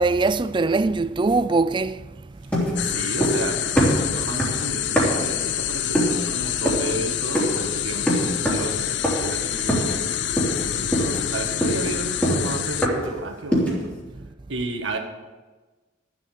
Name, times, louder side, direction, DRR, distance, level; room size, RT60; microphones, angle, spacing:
voice 1, 0.0-2.0, right 3 dB, 25° right, 0.4 m, -21 dB
sound 1, 2.5-3.5 3.8-5.3 5.9-6.2 6.7-6.9 7.3-7.7 8.1-8.7 9.0-9.4 9.7-10.1 10.4-10.6 10.9-13.2 13.5-13.9, equal, 10° left, 3.3 m, -23 dB
sound 2, 2.8-12.9, left 10 dB, 65° left, 0.6 m, -27 dB
voice 2, 2.8-10.0 10.7-13.9 14.5-15.0, right 2 dB, 85° right, 1.7 m, -32 dB
13.0 x 8.3 x 6.7 m
head